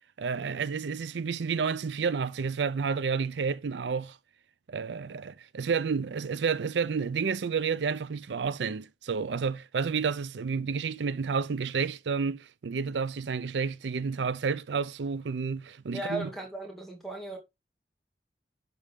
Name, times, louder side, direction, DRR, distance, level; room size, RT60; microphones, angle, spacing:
voice 1, 0.2-4.2 4.7-16.3, right 5 dB, 90° right, 0.5 m, -30 dB
voice 2, 15.9-17.4, right 1 dB, ahead, 2.4 m, -36 dB
11.0 x 3.9 x 3.5 m
head